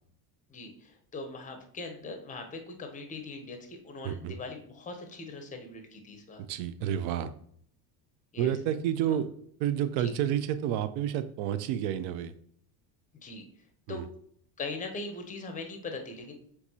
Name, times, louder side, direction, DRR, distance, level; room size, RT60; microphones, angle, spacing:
voice 1, 0.5-6.4 8.3-8.5 9.0-9.2 10.0-10.1 13.2-13.5 13.9-14.0 14.6-16.3, left 3 dB, 15° left, 5 dB, 0.5 m, -41 dB
voice 2, 6.5-7.3 8.4-9.3 9.6-12.3 13.9-14.1, right 10 dB, 75° right, 12 dB, 0.6 m, -30 dB
4.6 x 3.5 x 2.7 m, 0.64 s
cardioid pair, 145°, 47 cm